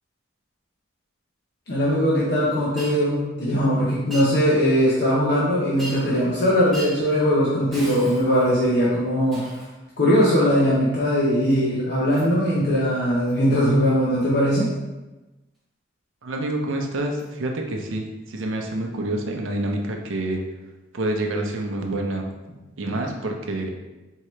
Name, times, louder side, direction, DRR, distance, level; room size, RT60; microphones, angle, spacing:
voice 1, 1.7-9.4 10.0-14.7, equal, 55° left, -7 dB, 0.7 m, -20 dB
Shatter, 2.8-3.0 4.1-4.3 5.8-6.2 6.7-7.0 7.7-8.6 9.3-9.8 12.1-12.3 13.3-13.4 14.2-14.3 17.2-17.3 18.4-18.5, right 1 dB, ahead, 0.8 m, -38 dB
voice 2, 16.2-20.4 20.9-22.3 22.8-23.7, right 1 dB, 85° right, 2 dB, 0.6 m, -27 dB
4.5 x 2.8 x 3.1 m, 1.1 s
head